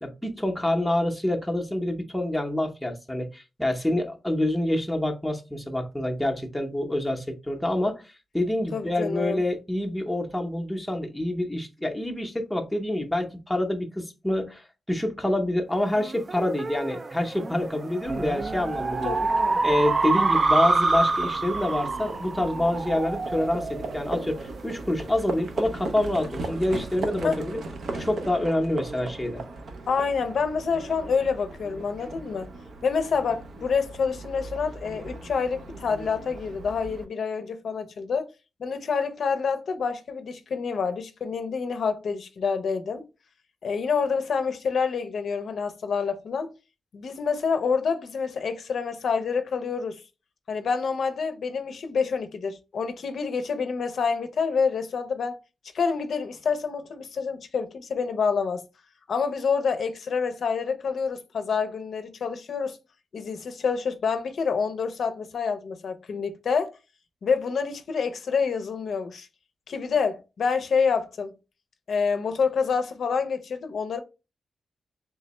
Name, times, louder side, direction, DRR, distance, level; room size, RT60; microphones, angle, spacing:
voice 1, 0.0-8.0 8.3-19.1 19.6-27.6 27.9-29.4, left 1 dB, 5° left, 0.6 m, -27 dB
voice 2, 8.7-9.4 19.1-19.6 27.2-27.4 29.9-32.5 32.8-38.3 38.6-43.0 43.6-46.5 46.9-50.0 50.5-55.4 55.7-58.6 59.1-62.8 63.1-66.7 67.2-69.3 69.7-71.3 71.9-74.0, left 5 dB, 70° left, 0.5 m, -27 dB
sound 1, 16.0-24.8, right 3 dB, 35° right, 0.3 m, -27 dB
Livestock farm animals working animals, 18.0-37.0, right 2 dB, 85° right, 0.6 m, -38 dB
3.4 x 3.2 x 3.0 m
wide cardioid pair, 155°, 0 cm